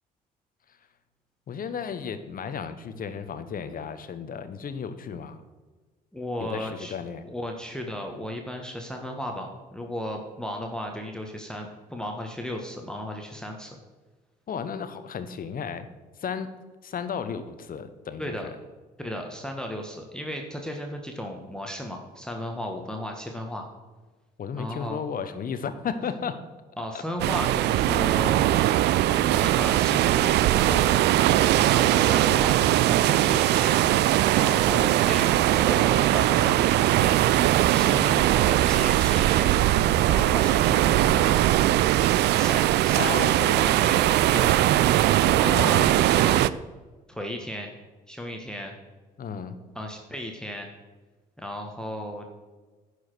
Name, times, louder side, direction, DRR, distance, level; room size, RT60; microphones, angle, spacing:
voice 1, 1.5-5.4 6.4-7.3 14.5-15.9 16.2-16.5 16.8-18.4 24.4-26.4 28.9-29.2 42.9-43.7 45.5-45.9 49.2-49.6, left 6 dB, 45° left, 11 dB, 0.9 m, -34 dB
voice 2, 6.1-6.9 7.2-13.8 18.2-18.5 19.0-23.7 24.6-25.0 26.8-28.6 29.1-31.0 31.5-33.8 34.3-37.2 37.7-39.5 40.1-41.4 42.3-44.7 45.2-46.4 47.1-47.7 48.1-48.7 49.7-50.7 51.4-52.3, equal, 5° left, 2 dB, 1.4 m, -35 dB
sound 1, 27.2-46.5, right 14 dB, 55° right, 0.4 m, -21 dB
10.5 x 4.9 x 6.0 m, 1.3 s
hypercardioid pair, 55°, 21 cm